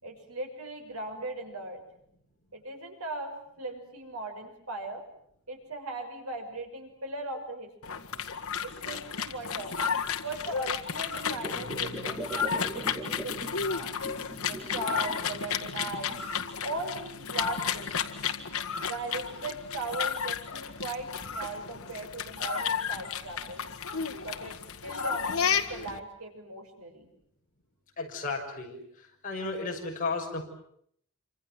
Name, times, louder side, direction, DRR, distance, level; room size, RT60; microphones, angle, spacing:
voice 1, 0.0-1.8 2.5-5.0 5.5-8.0 8.8-9.8 10.2-13.9 14.4-16.2 16.6-18.1 18.8-23.6 24.2-24.6 24.8-27.1, right 2 dB, 75° right, 4 dB, 6.0 m, -38 dB
sound 1, 7.8-26.0, left 6 dB, 70° left, 1.9 m, -33 dB
sound 2, 11.3-13.5 13.8-15.2 15.6-16.5 17.1-17.2, right 1 dB, 15° right, 3.1 m, -40 dB
voice 2, 28.0-28.8 29.2-30.4, left 3 dB, 35° left, 0 dB, 6.4 m, -33 dB
27.5 x 25.5 x 7.8 m, 0.67 s
head